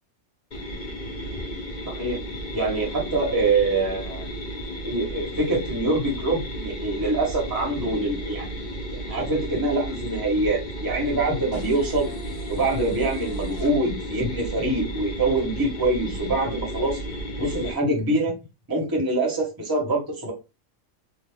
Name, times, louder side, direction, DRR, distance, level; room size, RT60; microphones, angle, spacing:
sound 1, 0.5-17.7, right 1 dB, 40° left, 0.8 m, -33 dB
voice 1, 2.5-4.2 4.8-8.5 8.9-12.1 12.5-17.0 17.4-18.3 18.7-20.3, right 2 dB, 20° right, 0.8 m, -24 dB
sound 2, 11.5-13.7, right 2 dB, 75° left, 1.2 m, -38 dB
3.0 x 2.0 x 3.4 m
omnidirectional pair, 1.4 m